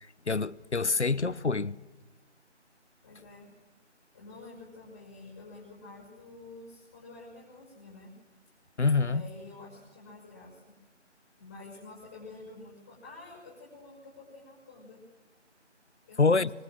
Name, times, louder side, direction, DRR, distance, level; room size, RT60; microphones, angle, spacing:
voice 1, 0.3-1.8 8.8-9.3 16.2-16.5, left 4 dB, 70° left, 1.0 m, -26 dB
voice 2, 3.0-3.5 4.1-8.1 9.0-10.6 11.4-15.0 16.1-16.5, left 3 dB, 15° left, 6.3 m, -49 dB
25.5 x 25.0 x 7.8 m
figure-of-eight pair, 170°, 35 cm